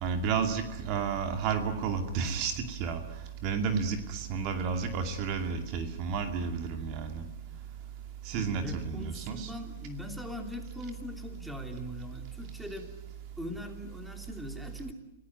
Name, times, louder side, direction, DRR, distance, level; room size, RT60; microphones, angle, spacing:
voice 1, 0.0-3.0 3.4-7.2 8.2-9.5, right 6 dB, 40° right, 7 dB, 2.4 m, -31 dB
voice 2, 8.3-12.9 13.4-14.9, left 1 dB, ahead, 4 dB, 2.9 m, -41 dB
27.5 x 17.5 x 9.6 m, 0.96 s
hypercardioid pair, 145°, 0 cm